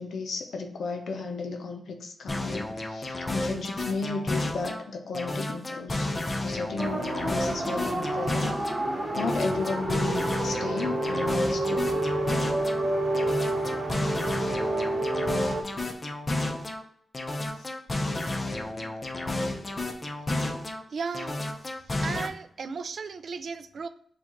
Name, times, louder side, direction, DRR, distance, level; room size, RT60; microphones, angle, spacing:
voice 1, 0.0-6.1 6.4-8.6 8.9-12.0 18.8-18.9, left 4 dB, 85° left, 4 dB, 0.6 m, -34 dB
sound 1, 2.3-4.8 5.1-8.8 9.1-12.8 13.1-16.8 17.1-20.8 21.1-22.3, left 2 dB, 35° left, 0.7 m, -32 dB
sound 2, 6.8-15.6, right 1 dB, 30° right, 1.0 m, -29 dB
voice 2, 20.9-21.4 22.0-23.9, right 5 dB, 65° right, 12 dB, 0.3 m, -35 dB
6.9 x 2.3 x 2.9 m, 0.64 s
cardioid pair, 85°, 0 cm